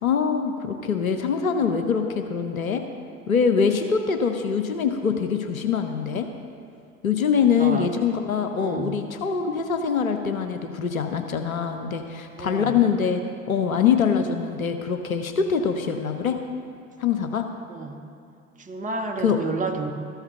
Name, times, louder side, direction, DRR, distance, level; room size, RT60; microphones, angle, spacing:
voice 1, 0.0-2.8 3.3-6.3 7.0-13.2 13.5-16.4 17.0-17.5 19.2-19.4, left 6 dB, 80° left, 6 dB, 0.6 m, -23 dB
voice 2, 8.5-8.9 12.4-12.7 17.7-18.0 18.6-19.9, right 3 dB, 20° right, 4 dB, 0.9 m, -30 dB
13.5 x 5.7 x 5.7 m, 2.4 s
figure-of-eight pair, 65°, 41 cm